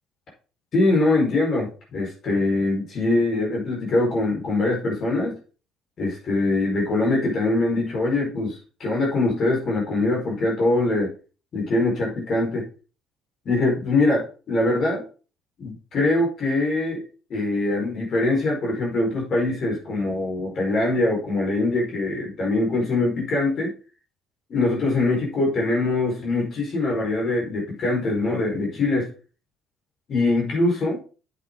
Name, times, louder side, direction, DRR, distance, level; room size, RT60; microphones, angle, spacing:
voice 1, 0.7-5.4 6.0-11.1 11.5-12.7 13.4-15.0 15.6-17.0 17.3-23.7 24.5-29.1 30.1-31.0, left 2 dB, 45° left, -2 dB, 4.7 m, -23 dB
8.3 x 7.8 x 3.9 m, 0.37 s
figure-of-eight pair, 55°, 0 cm